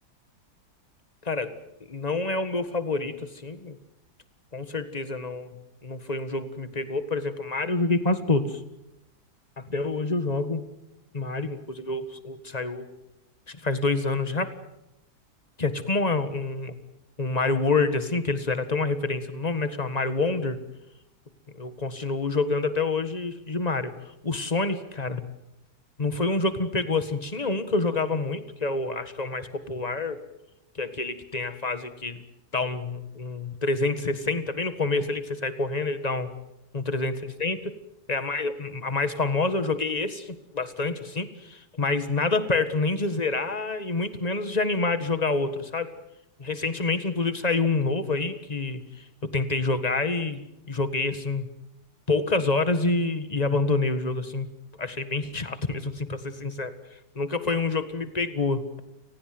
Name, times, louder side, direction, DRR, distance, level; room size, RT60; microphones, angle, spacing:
voice 1, 1.9-3.8 4.5-5.5 5.8-8.6 9.6-10.6 11.1-12.9 13.5-14.5 15.6-16.8 17.2-20.6 21.5-23.9 24.2-25.2 26.0-30.2 30.7-32.2 32.5-36.3 36.7-37.1 37.4-37.7 38.1-45.9 46.4-51.5 52.1-54.5 54.8-56.7 57.1-58.6, left 3 dB, 25° left, 11 dB, 1.7 m, -27 dB
30.0 x 19.5 x 7.8 m, 0.89 s
omnidirectional pair, 1.8 m